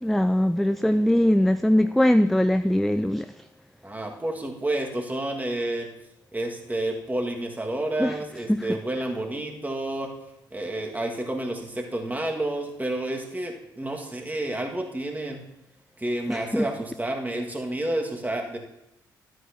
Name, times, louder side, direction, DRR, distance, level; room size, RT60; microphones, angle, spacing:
voice 1, 0.0-3.4 8.0-8.2 8.5-8.8 16.3-16.7, left 1 dB, ahead, 11 dB, 0.3 m, -21 dB
voice 2, 3.8-5.9 6.3-10.1 10.5-15.4 16.0-18.6, right 1 dB, 15° right, 2 dB, 1.7 m, -30 dB
12.5 x 8.0 x 2.8 m, 0.90 s
figure-of-eight pair, 45°, 11 cm